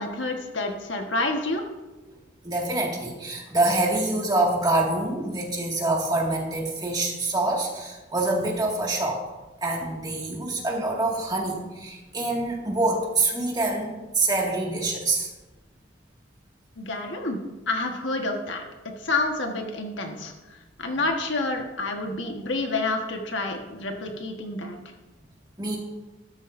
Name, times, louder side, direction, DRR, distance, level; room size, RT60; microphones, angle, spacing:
voice 1, 0.0-1.6 16.8-17.4 17.7-18.6 19.0-20.3 20.8-24.8, left 2 dB, 65° left, 3 dB, 1.4 m, -28 dB
voice 2, 2.4-9.2 9.6-15.3 25.6-25.8, right 2 dB, 20° right, -2 dB, 2.0 m, -26 dB
14.0 x 13.0 x 2.6 m, 1.1 s
head